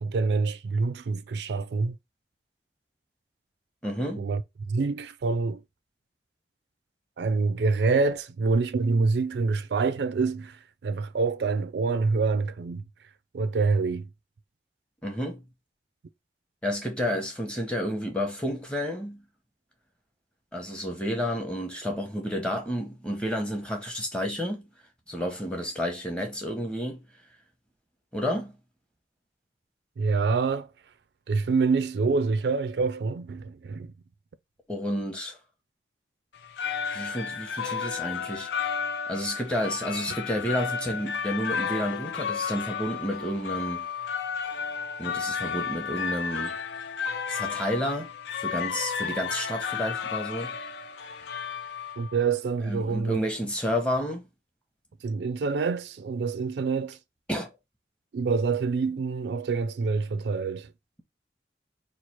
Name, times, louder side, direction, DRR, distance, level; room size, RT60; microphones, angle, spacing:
voice 1, 0.0-2.0 4.2-4.4 4.7-5.6 7.2-12.8 13.3-14.1 30.0-30.7 31.3-33.9 52.0-53.2 55.0-57.0 58.1-60.7, right 4 dB, 75° right, 0.4 m, -26 dB
voice 2, 3.8-4.3 15.0-15.5 16.6-19.2 20.5-24.7 25.1-27.0 28.1-28.6 34.7-35.4 36.9-38.5 39.1-43.9 45.0-46.6 47.3-50.6 52.7-54.3 57.3-57.5, equal, 5° left, 0.7 m, -31 dB
sound 1, 36.3-52.2, left 6 dB, 80° left, 0.4 m, -33 dB
3.0 x 2.4 x 4.3 m
head